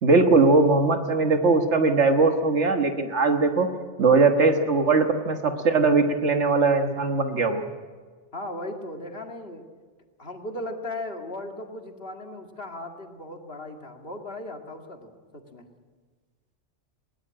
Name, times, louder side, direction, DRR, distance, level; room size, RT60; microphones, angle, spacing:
voice 1, 0.0-3.7 4.0-7.6, right 3 dB, 75° right, 5 dB, 1.7 m, -20 dB
voice 2, 8.3-9.6 10.2-15.7, left 1 dB, 55° left, 3 dB, 2.3 m, -37 dB
20.5 x 18.5 x 8.7 m, 1.4 s
omnidirectional pair, 1.2 m